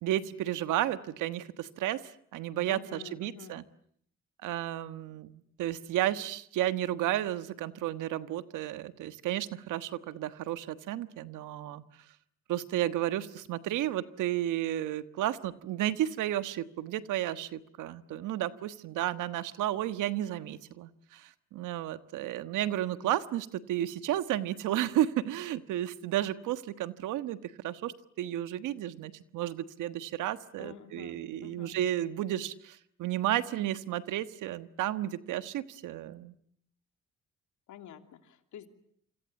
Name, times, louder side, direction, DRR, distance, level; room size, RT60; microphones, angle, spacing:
voice 1, 0.0-3.6 4.4-11.8 12.5-36.3, right 13 dB, 90° right, 12 dB, 1.4 m, -32 dB
voice 2, 2.7-3.5 30.6-31.8 37.7-38.7, left 9 dB, 75° left, 7 dB, 3.0 m, -48 dB
27.5 x 26.0 x 8.3 m, 0.67 s
cardioid pair, 90°, 30 cm